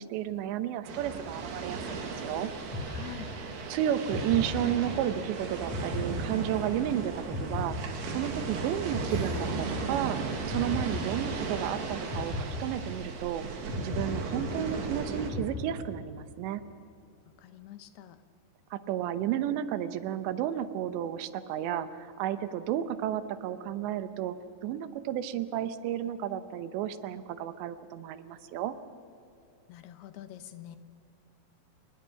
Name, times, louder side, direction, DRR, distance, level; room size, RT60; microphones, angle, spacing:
voice 1, 0.0-2.5 3.7-7.2 7.4-10.2 10.5-13.4 13.8-16.6 18.7-24.4 24.6-28.7, right 11 dB, 90° right, 11 dB, 3.2 m, -32 dB
sound 1, 0.8-15.3, right 4 dB, 70° right, 4.2 m, -36 dB
sound 2, 2.7-3.6 4.1-5.2 5.7-6.9 7.3-8.5 8.9-10.1 10.5-11.6 12.1-13.3 13.7-14.9 15.3-16.2, left 2 dB, 40° left, 4.7 m, -37 dB
voice 2, 2.9-3.3 17.4-18.2 29.7-30.8, left 13 dB, 75° left, 10 dB, 2.8 m, -46 dB
29.0 x 19.5 x 5.8 m, 2.6 s
omnidirectional pair, 4.9 m